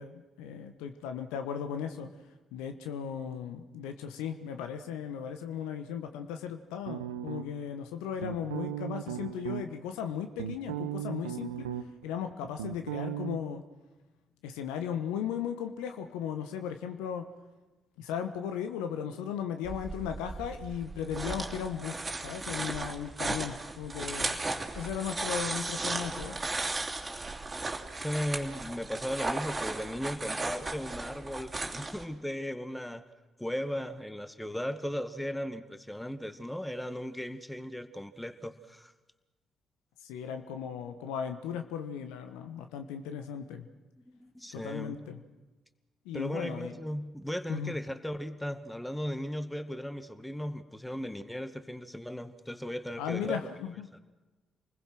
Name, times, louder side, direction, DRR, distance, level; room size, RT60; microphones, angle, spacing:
voice 1, 0.0-2.1 2.5-11.7 12.0-13.6 14.4-17.3 18.0-24.4 24.7-26.4 40.0-43.7 44.5-45.2 46.0-46.7 47.5-47.8 53.0-53.9, left 8 dB, 75° left, 7 dB, 1.3 m, -36 dB
sound 1, 6.9-7.7 8.2-9.6 10.1-12.1 12.3-13.4, right 11 dB, 85° right, 0.8 m, -36 dB
sound 2, 19.6-32.0, right 3 dB, 25° right, 3.0 m, -36 dB
voice 2, 27.9-33.0 33.4-38.9 44.1-45.0 46.1-53.4 53.9-54.0, equal, 5° left, 10 dB, 1.9 m, -37 dB
28.5 x 20.5 x 6.1 m, 1.2 s
figure-of-eight pair, 40°, 0 cm